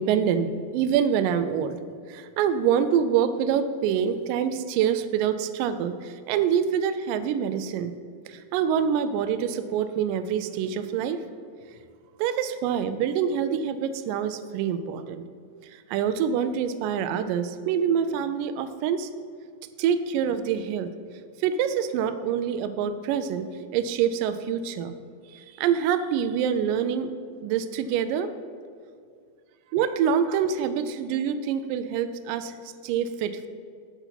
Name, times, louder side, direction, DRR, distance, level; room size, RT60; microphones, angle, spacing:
voice 1, 0.0-1.8 2.1-7.9 8.3-11.2 12.2-15.2 15.6-19.1 19.8-20.9 21.4-23.5 23.7-24.9 25.3-27.1 27.4-28.3 29.7-33.5, right 8 dB, 90° right, 10 dB, 1.9 m, -26 dB
8.0 x 7.0 x 5.7 m, 2.2 s
omnidirectional pair, 4.4 m